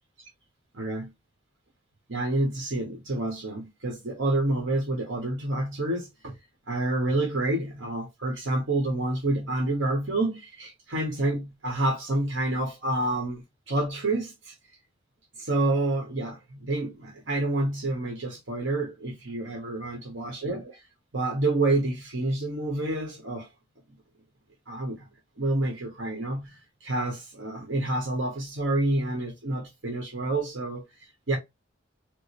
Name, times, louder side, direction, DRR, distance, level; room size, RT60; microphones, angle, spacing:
voice 1, 0.7-1.1 2.1-6.4 6.7-14.6 15.4-20.8 21.1-23.5 24.7-25.1 25.4-31.4, right 2 dB, 80° right, 1.0 m, -28 dB
4.5 x 2.0 x 2.9 m
head